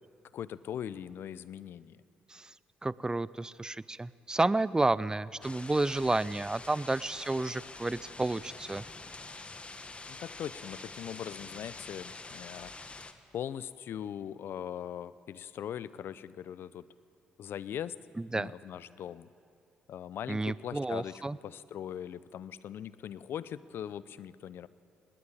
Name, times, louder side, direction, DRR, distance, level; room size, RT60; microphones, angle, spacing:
voice 1, 0.3-2.0 10.1-13.1 13.3-16.9 17.4-18.0 18.3-19.3 19.9-24.7, left 9 dB, 60° left, 17 dB, 0.7 m, -40 dB
voice 2, 2.8-8.8 18.2-18.5 20.3-21.4, right 2 dB, 15° right, 20 dB, 0.6 m, -31 dB
sound 1, 5.4-13.1, left 3 dB, 30° left, 1.7 m, -46 dB
24.5 x 19.0 x 9.0 m, 2.5 s
hypercardioid pair, 45°, 4 cm